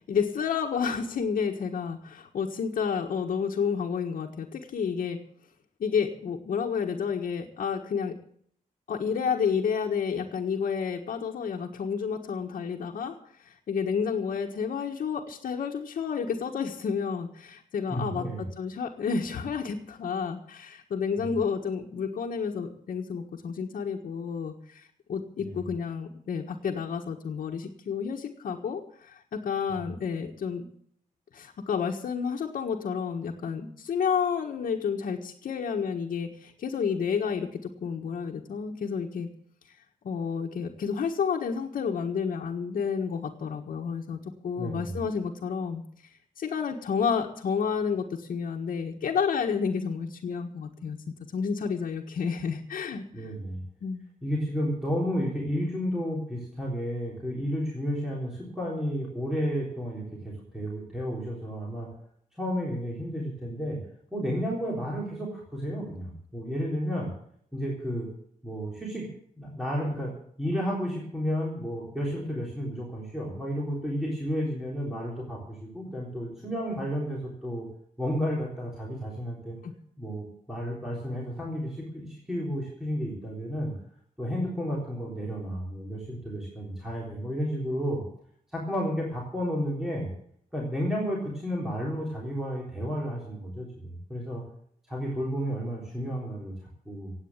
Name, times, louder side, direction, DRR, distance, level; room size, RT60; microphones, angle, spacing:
voice 1, 0.1-5.2 5.8-8.2 8.9-30.7 31.3-39.3 40.0-45.8 46.4-53.3 53.8-54.0 79.6-79.7, left 6 dB, 85° left, -1 dB, 1.6 m, -30 dB
voice 2, 17.9-18.5 21.2-21.4 25.4-25.6 29.7-29.8 44.6-45.0 53.1-53.6 54.2-61.9 62.4-63.8 64.1-67.1 67.5-68.1 68.4-69.1 69.4-70.1 70.4-77.7 78.0-79.6 80.0-83.7 84.2-88.0 88.5-90.1 90.5-94.4 94.9-96.5 96.9-97.1, equal, 5° right, -4 dB, 3.7 m, -32 dB
17.0 x 8.8 x 7.4 m, 0.64 s
wide cardioid pair, 165°, 14 cm